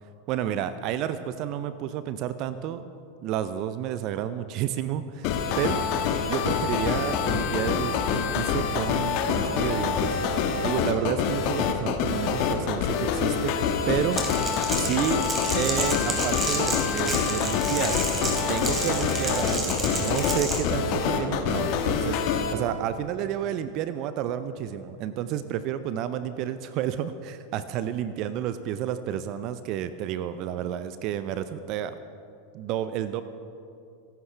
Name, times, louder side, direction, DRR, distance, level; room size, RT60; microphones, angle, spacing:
voice 1, 0.3-2.9 3.2-5.9 6.3-10.2 10.6-13.5 13.9-14.2 14.7-15.2 15.5-18.0 18.5-31.9 32.5-33.2, right 10 dB, 45° right, 12 dB, 0.6 m, -30 dB
sound 1, 5.2-22.5, left 6 dB, 50° left, 1.4 m, -26 dB
Crackle, 14.1-20.6, right 2 dB, 20° right, 3.2 m, -31 dB
24.5 x 12.0 x 3.4 m, 2.6 s
figure-of-eight pair, 85°, 0 cm